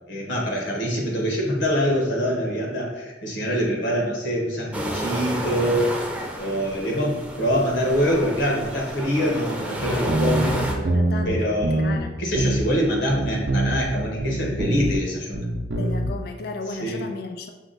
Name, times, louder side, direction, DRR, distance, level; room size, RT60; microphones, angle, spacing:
voice 1, 0.1-5.9 6.4-10.5 11.2-11.8 12.2-15.5 16.8-17.0, equal, 85° left, -1 dB, 1.1 m, -24 dB
sound 1, 4.7-10.7, right 1 dB, 10° right, 0.5 m, -31 dB
sound 2, 9.8-11.3 11.6-12.0 12.3-12.8 13.1-15.0 15.3-16.1, right 1 dB, 75° right, 0.5 m, -24 dB
voice 2, 10.4-12.2 15.8-17.5, left 3 dB, 55° left, 6 dB, 0.3 m, -34 dB
5.7 x 2.2 x 3.9 m, 1.1 s
head